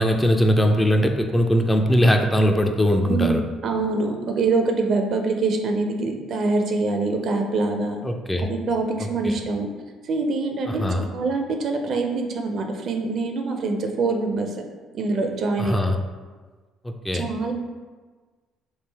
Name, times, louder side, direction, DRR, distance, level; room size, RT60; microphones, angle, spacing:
voice 1, 0.0-3.4 8.0-8.5 9.0-9.3 10.7-11.0 15.6-15.9 16.8-17.2, equal, 10° left, 4 dB, 0.4 m, -20 dB
voice 2, 3.0-8.0 8.4-9.7 10.1-14.5 14.9-15.8 17.1-17.5, right 3 dB, 55° right, 4 dB, 0.4 m, -24 dB
3.2 x 2.4 x 3.3 m, 1.4 s
hypercardioid pair, 55°, 0 cm